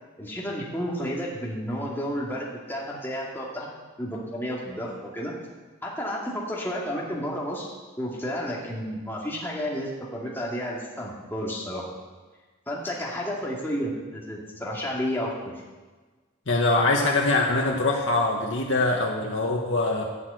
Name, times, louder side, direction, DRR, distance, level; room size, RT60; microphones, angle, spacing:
voice 1, 0.2-3.7 4.0-5.3 5.8-7.7 8.0-11.9 12.7-15.6, equal, 10° left, -4 dB, 2.2 m, -31 dB
voice 2, 16.5-20.0, left 2 dB, 65° left, -2 dB, 1.5 m, -23 dB
12.5 x 6.6 x 8.0 m, 1.3 s
head